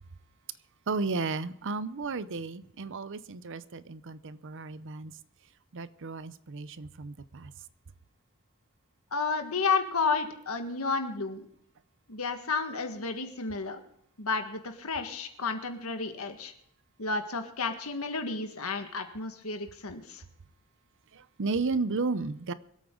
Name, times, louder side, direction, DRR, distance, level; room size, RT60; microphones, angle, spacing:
voice 1, 0.9-5.2 5.7-7.5 21.1-22.5, right 4 dB, 60° right, 15 dB, 0.7 m, -33 dB
voice 2, 9.1-11.5 12.1-13.8 14.2-16.5 17.0-20.2, left 4 dB, 75° left, 7 dB, 1.7 m, -31 dB
24.5 x 8.7 x 3.8 m, 0.75 s
head